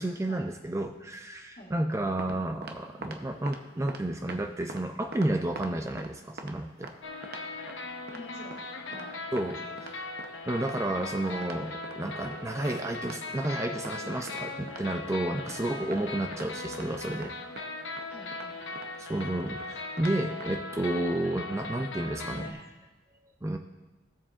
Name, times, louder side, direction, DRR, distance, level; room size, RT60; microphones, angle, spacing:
voice 1, 0.0-6.9 9.3-10.0 10.5-17.3 19.0-22.7 23.4-23.6, right 1 dB, 15° right, 4 dB, 0.4 m, -31 dB
sound 1, 1.9-2.4 2.6-3.2 3.5-3.6 3.9-4.4 4.7-4.8 5.1-6.1 6.4-6.5 6.8-7.0 7.2-7.8 8.1-8.2 8.5-8.6 8.9-9.1 9.4-9.5 9.8-9.9 10.2-10.3 10.6-10.8 11.0-11.1 11.4-12.0 12.2-12.4 12.7-12.8 13.0-13.2 13.4-14.0 14.3-15.2 15.5-15.6 15.9-16.0 16.3-16.5 16.7-16.9 17.1-17.3 17.6-17.7 18.0-18.1 18.3-18.5 18.8-18.9 19.2-19.3 19.6-19.7 20.0-20.1 20.4-20.5, right 3 dB, 55° right, 0.8 m, -43 dB
sound 2, 7.0-22.5, left 3 dB, 85° left, 0.9 m, -39 dB
voice 2, 8.1-9.2 9.6-9.8 18.1-18.8, left 1 dB, 55° left, -3 dB, 2.2 m, -48 dB
sound 3, 11.6-17.8, right 1 dB, 80° right, 1.5 m, -52 dB
16.0 x 7.3 x 2.5 m, 1.3 s
head